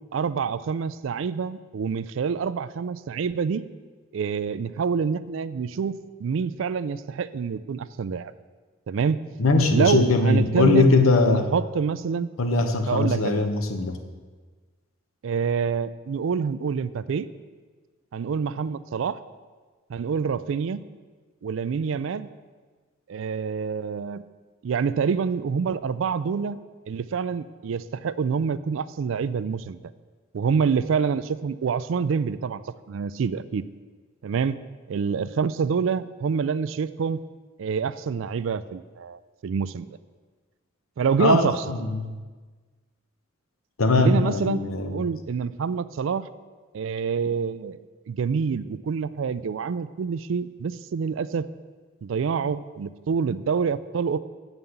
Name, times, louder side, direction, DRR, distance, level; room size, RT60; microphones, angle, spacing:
voice 1, 0.1-3.7 4.1-5.9 6.2-8.3 8.9-9.2 9.7-11.0 11.3-12.3 12.9-13.5 15.2-17.3 18.1-19.2 19.9-20.9 21.4-22.3 23.1-24.2 24.6-26.6 26.9-29.8 30.3-32.6 32.9-33.6 34.2-34.6 34.9-37.2 37.6-39.9 41.0-41.6 43.9-46.3 46.7-47.8 48.1-51.5 52.0-54.2, right 6 dB, 65° right, 16 dB, 0.3 m, -26 dB
voice 2, 9.4-11.5 12.4-14.0 41.2-42.1 43.8-45.0, left 3 dB, 80° left, 7 dB, 0.9 m, -21 dB
8.0 x 5.5 x 7.1 m, 1.4 s
head